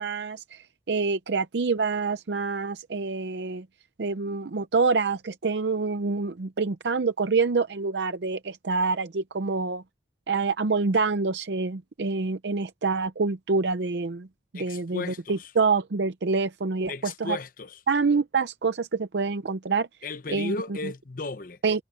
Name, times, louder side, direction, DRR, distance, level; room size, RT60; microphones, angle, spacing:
voice 1, 0.0-3.7 4.0-9.8 10.3-14.3 14.6-17.4 17.9-19.9 20.3-20.5 21.6-21.8, right 4 dB, 70° right, 0.6 m, -26 dB
voice 2, 14.5-15.5 16.9-17.8 20.0-21.8, left 3 dB, 50° left, 0.9 m, -35 dB
head